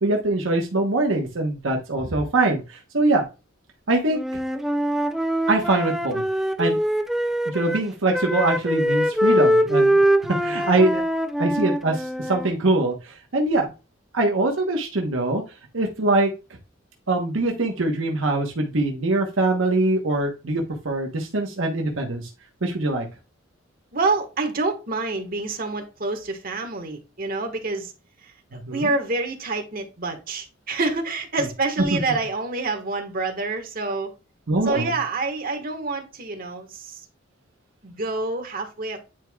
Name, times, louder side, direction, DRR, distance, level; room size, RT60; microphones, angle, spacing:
voice 1, 0.0-3.2 3.9-4.2 5.5-6.2 6.6-6.8 7.4-9.9 10.4-11.0 11.4-13.7 14.1-15.4 15.7-16.3 17.1-22.3 22.6-23.0 28.5-28.9 31.9-32.0 34.5-34.9, right 2 dB, 75° right, 1.1 m, -23 dB
Wind instrument woodwind instrument, 4.1-7.8 8.1-12.5, equal, ahead, 0.4 m, -23 dB
voice 2, 10.4-10.8 23.9-27.9 28.2-34.1 34.6-37.0 37.8-39.1, right 3 dB, 45° right, 1.4 m, -27 dB
9.1 x 4.6 x 2.3 m
head